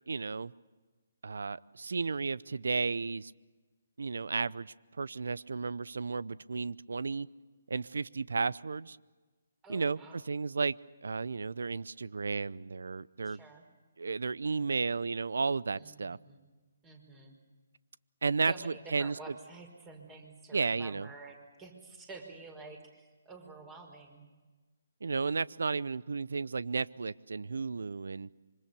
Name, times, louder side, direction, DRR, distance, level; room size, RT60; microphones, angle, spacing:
voice 1, 0.1-0.5 1.2-3.3 4.0-7.3 7.7-9.0 9.7-10.7 11.0-13.4 14.0-16.2 18.2-19.2 20.5-21.1 25.0-28.3, right 4 dB, 70° right, 20 dB, 0.7 m, -33 dB
voice 2, 9.6-10.2 13.2-13.6 15.7-16.4 16.8-17.3 18.5-24.2, right 3 dB, 15° right, 4 dB, 5.3 m, -49 dB
26.5 x 25.0 x 6.9 m, 1.3 s
figure-of-eight pair, 145°, 0 cm